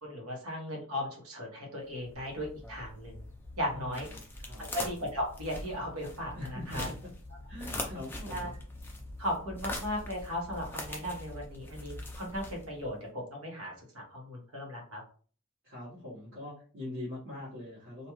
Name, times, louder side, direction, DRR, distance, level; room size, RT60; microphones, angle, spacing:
voice 1, 0.0-3.2 3.6-4.1 4.6-6.9 8.3-8.5 9.2-15.0, equal, 80° right, -1 dB, 1.1 m, -37 dB
sound 1, 1.9-13.0, left 1 dB, 10° left, 0.4 m, -42 dB
voice 2, 3.7-4.7 6.3-7.1 7.5-8.6 15.6-18.1, left 1 dB, 55° right, -10 dB, 1.1 m, -43 dB
2.5 x 2.3 x 2.9 m, 0.42 s
head